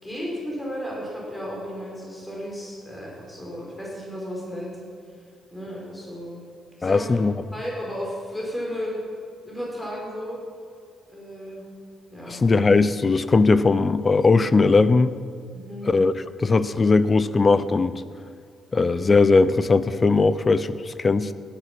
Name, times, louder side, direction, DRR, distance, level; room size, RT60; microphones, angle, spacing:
voice 1, 0.0-4.8 5.5-6.4 6.8-7.2 7.5-9.0 9.4-10.4 11.1-11.6 12.1-12.4 15.5-15.9, equal, 10° left, -4 dB, 4.8 m, -34 dB
voice 2, 6.8-7.3 12.3-15.1 15.9-18.0 18.7-21.3, left 3 dB, 30° left, 14 dB, 0.6 m, -19 dB
17.0 x 10.0 x 6.1 m, 2.2 s
cardioid pair, 90°, 0 cm